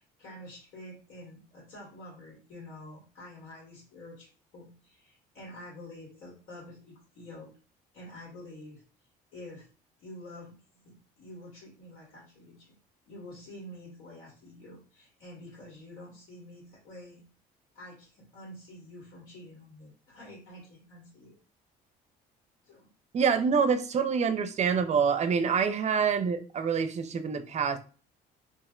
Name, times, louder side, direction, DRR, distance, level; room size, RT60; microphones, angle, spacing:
voice 1, 0.0-4.3 4.5-7.5 7.9-8.8 9.3-9.7 10.0-12.8 13.1-17.2 17.7-21.4 22.6-22.9, left 1 dB, 75° left, 1.6 m, -48 dB
voice 2, 23.1-27.8, right 6 dB, 40° right, 0.5 m, -26 dB
2.6 x 2.0 x 3.7 m
supercardioid pair, 85°, 18 cm